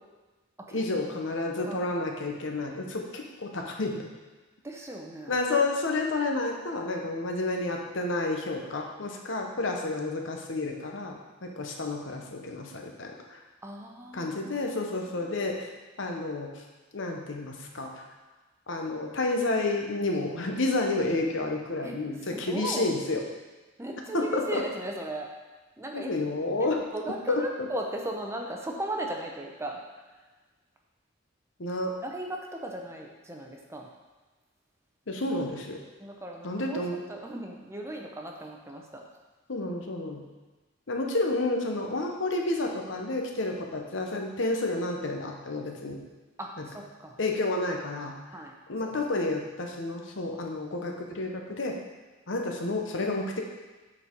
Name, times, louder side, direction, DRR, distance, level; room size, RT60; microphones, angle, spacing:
voice 1, 0.7-4.0 5.3-13.1 14.1-15.7 16.0-16.5 16.9-17.9 18.7-23.2 24.1-24.6 25.9-26.8 27.3-27.4 31.6-31.9 35.1-35.8 36.4-37.0 39.5-40.2 40.9-46.0 46.6-46.7 47.2-48.2 48.7-51.8 52.3-53.4, left 2 dB, 65° left, 2 dB, 0.9 m, -30 dB
voice 2, 4.6-5.4 13.6-14.7 15.1-15.3 21.8-22.0 22.3-23.0 23.8-25.3 25.8-26.1 26.6-30.0 32.0-33.9 36.0-36.8 37.1-39.0 46.4-47.2 48.3-48.6 48.8-48.9, right 1 dB, 15° right, 1 dB, 0.7 m, -37 dB
7.8 x 4.2 x 4.5 m, 1.2 s
head